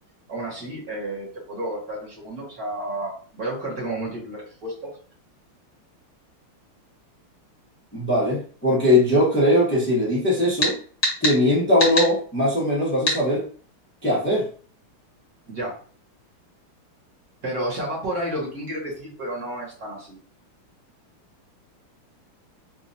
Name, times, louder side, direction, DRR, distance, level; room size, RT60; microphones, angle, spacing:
voice 1, 0.3-5.0 15.5-15.8 17.4-20.2, right 1 dB, 45° right, -5 dB, 1.8 m, -31 dB
voice 2, 7.9-10.7 11.2-13.4 14.0-14.5, left 1 dB, 15° left, -6 dB, 0.4 m, -20 dB
sound 1, 10.6-10.7 11.0-11.4 11.8-12.1 13.1-13.2, left 1 dB, 50° left, 1.5 m, -22 dB
4.3 x 2.5 x 2.6 m, 0.43 s
omnidirectional pair, 2.4 m